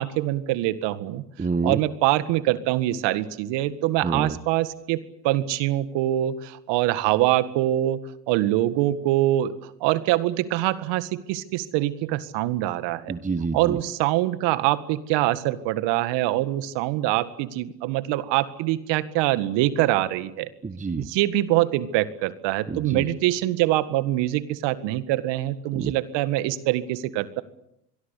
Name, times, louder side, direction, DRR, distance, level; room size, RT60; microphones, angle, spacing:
voice 1, 0.0-1.2 1.6-8.0 8.3-13.1 13.5-20.5 20.9-27.4, right 15 dB, 60° right, 13 dB, 1.9 m, -24 dB
voice 2, 1.4-1.8 4.0-4.4 13.1-13.8 20.6-21.1 22.7-23.1 25.7-25.9, right 4 dB, 15° right, 12 dB, 1.3 m, -28 dB
25.5 x 22.5 x 8.4 m, 0.79 s
hypercardioid pair, 80°, 47 cm